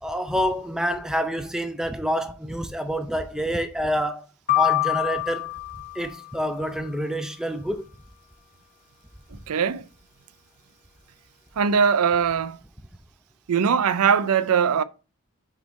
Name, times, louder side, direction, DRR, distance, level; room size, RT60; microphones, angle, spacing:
voice 1, 0.0-4.3 4.5-5.5 6.0-7.8, equal, 5° right, 0.4 m, -27 dB
sound 1, 4.5-6.6, left 19 dB, 40° left, 0.7 m, -26 dB
voice 2, 9.5-9.8 11.6-12.6 13.5-14.8, right 6 dB, 85° right, 0.4 m, -21 dB
5.9 x 3.9 x 4.0 m
head